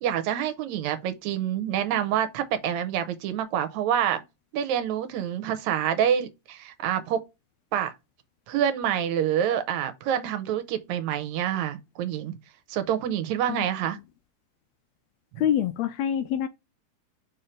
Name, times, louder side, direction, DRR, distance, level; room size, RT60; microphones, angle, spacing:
voice 1, 0.0-4.2 4.5-7.2 7.7-7.9 8.5-12.4 12.7-14.0, right 9 dB, 85° right, 2.0 m, -27 dB
voice 2, 15.4-16.5, left 9 dB, 80° left, 1.6 m, -26 dB
4.5 x 4.4 x 5.0 m
omnidirectional pair, 3.3 m